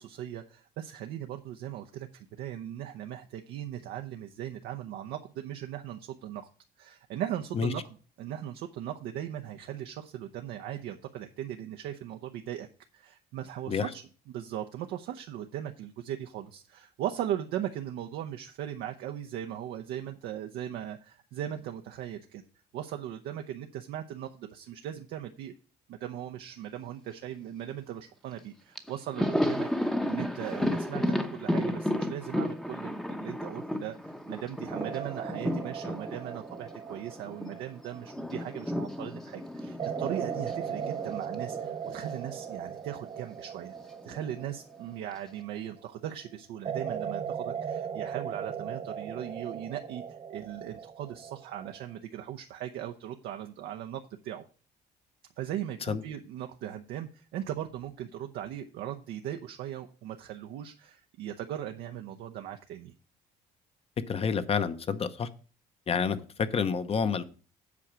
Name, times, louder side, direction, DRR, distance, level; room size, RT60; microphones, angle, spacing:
voice 1, 0.0-6.5 6.8-7.8 8.2-12.7 12.9-22.4 22.7-25.5 25.9-43.7 44.0-50.0 50.3-54.4 55.4-62.9, right 11 dB, 80° right, 0.7 m, -38 dB
Thunder, 28.4-28.5 28.8-37.6 37.8-42.2 42.4-42.6 43.7-44.4, left 1 dB, 5° left, 0.8 m, -33 dB
sound 1, 34.7-38.9 39.8-45.8 46.6-52.0, right 7 dB, 35° right, 0.7 m, -38 dB
voice 2, 64.1-65.3 65.9-67.2, left 6 dB, 35° left, 0.8 m, -29 dB
8.4 x 4.9 x 7.4 m
cardioid pair, 110°, 17 cm